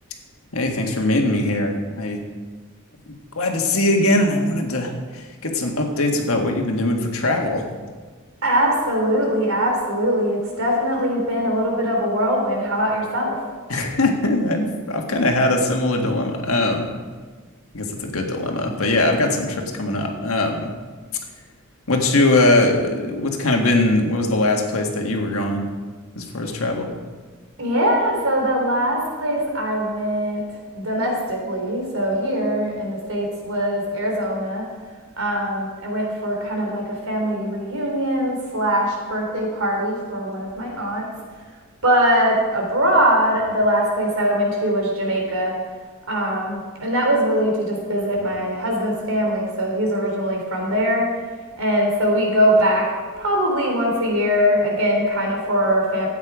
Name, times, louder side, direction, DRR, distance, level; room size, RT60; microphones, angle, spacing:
voice 1, 0.5-2.2 3.1-7.6 13.7-17.0 17.7-20.7 21.9-25.7 26.2-26.9, left 2 dB, 70° left, 2 dB, 1.8 m, -21 dB
voice 2, 8.4-13.4 27.6-30.4 30.7-34.6 35.2-41.1 41.8-45.6 46.1-51.1 51.6-56.1, equal, 70° right, 0 dB, 3.5 m, -22 dB
14.0 x 8.8 x 4.9 m, 1.4 s
head